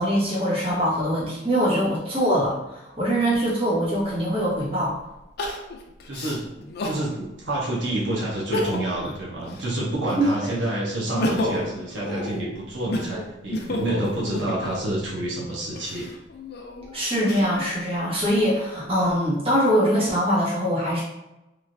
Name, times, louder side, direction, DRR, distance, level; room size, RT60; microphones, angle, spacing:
voice 1, 0.0-4.9 10.2-10.3 16.9-21.0, equal, 30° right, -7 dB, 1.0 m, -23 dB
Crying sobbing, 4.0-4.1 5.4-7.1 7.6-7.7 8.3-9.0 9.4-10.5 10.9-14.9 15.6-17.7 18.3-19.1, left 1 dB, 60° left, 0.4 m, -31 dB
voice 2, 6.1-16.1, right 1 dB, 80° right, -4 dB, 0.7 m, -28 dB
3.0 x 2.4 x 2.5 m, 0.94 s
head